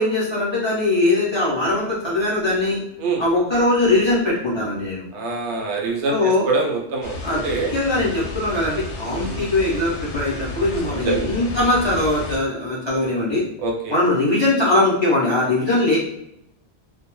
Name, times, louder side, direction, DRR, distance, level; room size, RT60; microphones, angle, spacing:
voice 1, 0.0-2.8 3.2-5.0 6.1-6.5 7.2-13.4 13.9-16.0, left 2 dB, 30° left, -8 dB, 0.6 m, -21 dB
voice 2, 5.1-7.1 7.4-7.7 9.3-9.5 11.0-11.2 13.6-14.0, right 3 dB, 80° right, 1 dB, 0.9 m, -24 dB
sound 1, 7.0-12.4, left 2 dB, 85° left, 0.9 m, -32 dB
2.3 x 2.2 x 2.9 m, 0.79 s
omnidirectional pair, 1.1 m